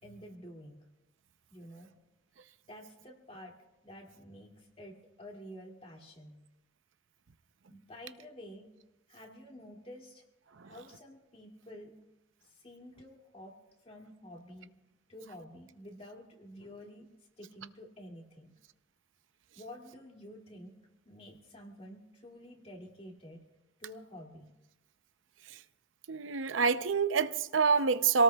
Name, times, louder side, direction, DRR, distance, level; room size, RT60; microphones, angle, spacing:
voice 1, 0.0-0.8 1.5-1.9 2.7-3.6 3.8-6.4 7.7-8.7 9.1-10.2 10.6-11.9 12.4-13.6 13.8-14.7 15.1-17.1 17.4-18.5 19.6-20.8 21.0-23.4 23.8-24.5, equal, 30° left, 2.5 m, -50 dB
voice 2, 26.1-28.2, right 5 dB, 85° right, 0.6 m, -26 dB
27.0 x 18.0 x 2.3 m
head